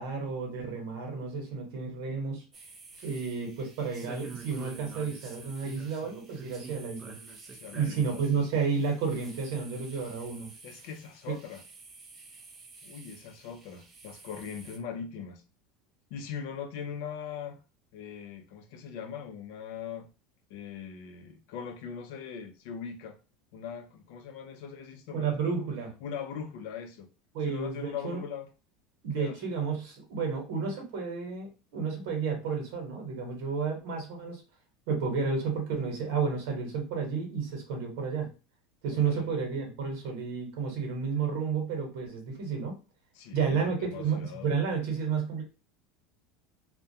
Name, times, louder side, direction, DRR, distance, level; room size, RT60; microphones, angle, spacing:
voice 1, 0.0-2.4 3.0-7.1 7.7-10.5 11.3-11.4 25.1-25.9 27.3-28.2 29.0-34.4 34.9-38.3 38.8-42.7 43.3-45.4, right 5 dB, 70° right, 1.0 m, -31 dB
sound 1, 2.5-14.8, right 4 dB, 20° right, 0.4 m, -49 dB
voice 2, 7.5-8.5 10.6-11.6 12.8-15.4 16.1-17.6 17.9-20.1 20.5-23.2 23.5-25.3 26.0-27.1 27.4-28.5 29.1-29.6 38.9-39.4 43.1-44.6, left 7 dB, 60° left, 0.5 m, -41 dB
2.3 x 2.1 x 2.7 m
supercardioid pair, 165°, 0 cm